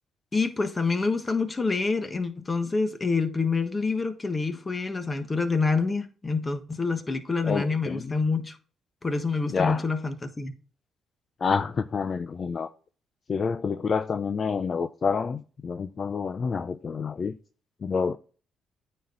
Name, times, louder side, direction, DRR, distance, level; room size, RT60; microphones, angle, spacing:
voice 1, 0.3-8.6 9.0-10.5, left 4 dB, 25° left, 1.3 m, -27 dB
voice 2, 7.5-8.1 9.5-9.8 11.4-12.7 13.3-17.3 17.8-18.2, left 5 dB, 45° left, 0.5 m, -28 dB
9.2 x 4.4 x 3.8 m
cardioid pair, 90°, 0 cm